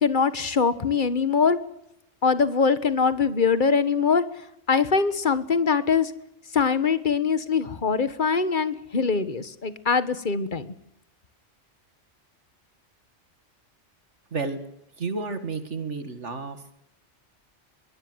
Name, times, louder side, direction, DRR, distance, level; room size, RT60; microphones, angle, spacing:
voice 1, 0.0-1.6 2.2-4.2 4.7-6.1 6.5-10.7, left 5 dB, 45° left, 13 dB, 1.5 m, -23 dB
voice 2, 15.0-16.6, right 4 dB, 75° right, 9 dB, 2.3 m, -31 dB
23.0 x 19.0 x 8.0 m, 0.81 s
omnidirectional pair, 1.2 m